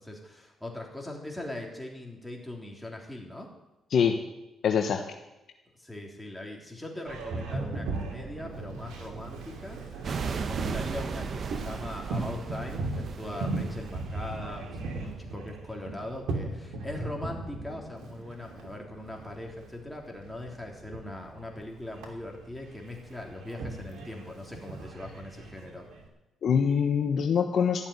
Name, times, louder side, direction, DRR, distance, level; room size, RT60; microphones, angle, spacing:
voice 1, 0.0-3.5 5.8-25.9, left 1 dB, 5° left, 0 dB, 3.5 m, -40 dB
voice 2, 4.6-5.0 26.4-27.9, left 7 dB, 60° left, 4 dB, 1.2 m, -24 dB
Boat Water vehicle, 7.1-26.1, right 2 dB, 80° right, 2.9 m, -38 dB
sound 1, 10.0-15.3, right 6 dB, 50° right, 1.0 m, -36 dB
14.0 x 7.3 x 9.8 m, 1.0 s
cardioid pair, 90°, 0 cm